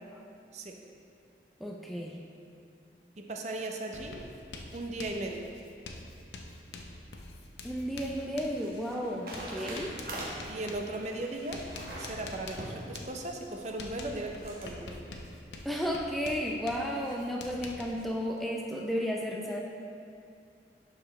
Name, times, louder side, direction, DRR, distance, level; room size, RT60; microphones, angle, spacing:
voice 1, 1.6-2.2 7.6-10.0 15.6-19.6, equal, ahead, -1 dB, 0.4 m, -33 dB
voice 2, 3.3-4.2 4.7-5.5 10.5-11.7 12.0-15.0, right 2 dB, 40° right, 2 dB, 0.6 m, -37 dB
Writing, 3.9-18.0, left 2 dB, 80° left, 0.7 m, -46 dB
sound 1, 7.5-14.7, right 1 dB, 55° right, 1.3 m, -44 dB
11.5 x 4.8 x 3.2 m, 2.4 s
head